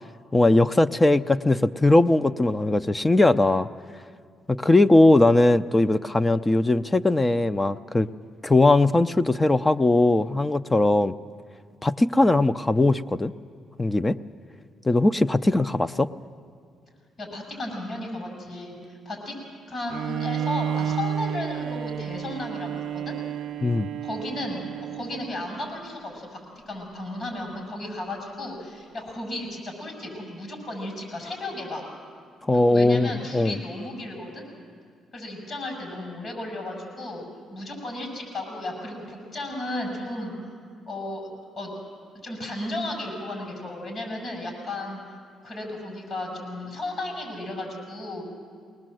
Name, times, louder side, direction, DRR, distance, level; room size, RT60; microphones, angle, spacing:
voice 1, 0.3-3.7 4.5-8.1 8.4-11.1 11.8-13.3 13.8-14.2 14.8-16.1 23.6-23.9 32.4-33.6, left 2 dB, 20° left, 12 dB, 0.5 m, -20 dB
voice 2, 17.2-19.3 19.7-23.2 24.0-24.6 24.9-26.3 26.6-31.8 32.5-34.4 35.1-40.3 40.9-41.3 41.6-41.7 42.2-45.0 45.4-48.2, left 1 dB, 50° left, 2 dB, 6.8 m, -34 dB
Bowed string instrument, 19.9-25.6, right 9 dB, 80° right, 0.5 m, -31 dB
21.5 x 19.5 x 7.7 m, 2.1 s
cardioid pair, 90°, 0 cm